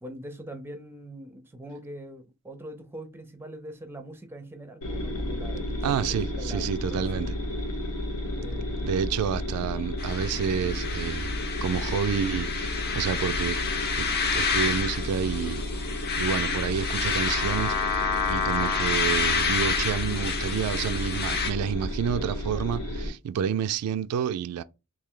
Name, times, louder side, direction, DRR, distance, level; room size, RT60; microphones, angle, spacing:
voice 1, 0.0-7.1 8.3-8.8, right 1 dB, 10° right, 0.5 m, -43 dB
sound 1, 4.8-23.1, left 1 dB, 90° left, 1.1 m, -32 dB
voice 2, 5.8-7.4 8.8-13.6 14.0-15.6 16.2-24.6, right 7 dB, 80° right, 0.3 m, -29 dB
sound 2, 10.0-21.5, left 5 dB, 45° left, 0.7 m, -29 dB
3.2 x 2.6 x 3.7 m
head